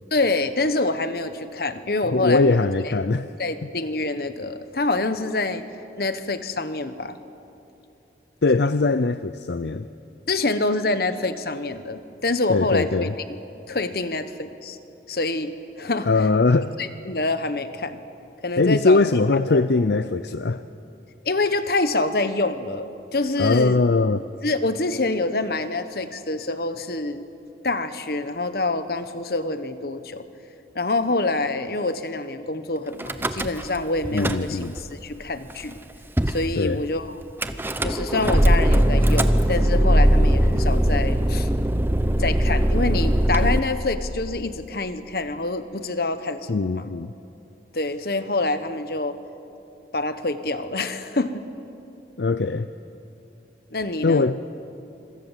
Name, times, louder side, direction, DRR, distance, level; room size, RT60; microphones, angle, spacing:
voice 1, 0.1-2.6 3.4-5.6 6.0-7.2 10.3-12.9 13.3-13.4 13.7-14.8 15.1-16.1 16.8-18.0 18.4-19.0 19.5-19.6 21.2-23.8 24.4-27.2 27.6-30.2 30.7-35.8 36.3-37.1 37.8-41.5 42.2-46.9 47.7-49.2 49.9-51.4 53.7-54.3, left 2 dB, 55° left, 10 dB, 1.3 m, -26 dB
voice 2, 2.0-3.3 8.4-9.8 12.5-13.1 16.1-16.7 18.6-20.6 23.4-24.2 34.1-34.7 36.6-36.8 46.5-47.1 52.2-52.7 54.0-54.4, left 3 dB, 70° left, 12 dB, 0.6 m, -21 dB
Car / Engine starting / Idling, 33.0-33.8 34.0-34.8 35.5-35.6 35.8-35.9 36.2-36.4 37.4-43.6, right 1 dB, 10° right, 0.8 m, -20 dB
26.0 x 23.5 x 7.5 m, 2.8 s
head